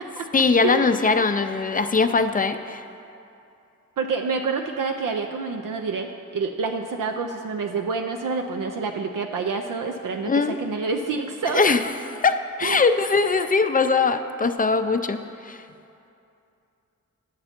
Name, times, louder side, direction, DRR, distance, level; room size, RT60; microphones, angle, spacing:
voice 1, 0.3-2.8 10.2-10.6 11.5-15.6, left 4 dB, 25° left, 9 dB, 0.4 m, -21 dB
voice 2, 4.0-11.7 12.6-12.8, right 4 dB, 80° right, 4 dB, 0.5 m, -28 dB
9.5 x 6.9 x 4.3 m, 2.7 s
cardioid pair, 70°, 32 cm